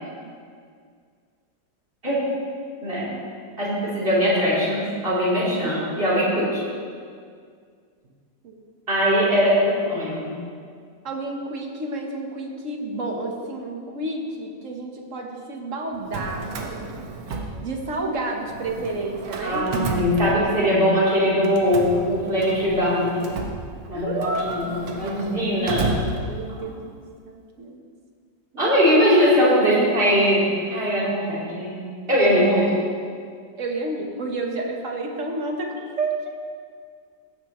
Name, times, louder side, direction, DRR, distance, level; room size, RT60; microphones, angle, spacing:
voice 1, 3.6-6.6 8.9-10.4 19.4-23.3 23.9-25.9 28.6-31.8 32.1-32.7, equal, 30° right, -9 dB, 3.7 m, -21 dB
voice 2, 11.0-16.9 17.6-19.7 23.9-25.4 25.7-27.8 28.5-28.7 33.6-36.2, right 2 dB, 45° right, 1 dB, 1.4 m, -31 dB
Drawer open or close, 15.9-18.1 18.4-20.8 21.4-26.7, right 3 dB, 90° right, 1.7 m, -32 dB
16.0 x 9.7 x 3.1 m, 2.1 s
omnidirectional pair, 2.0 m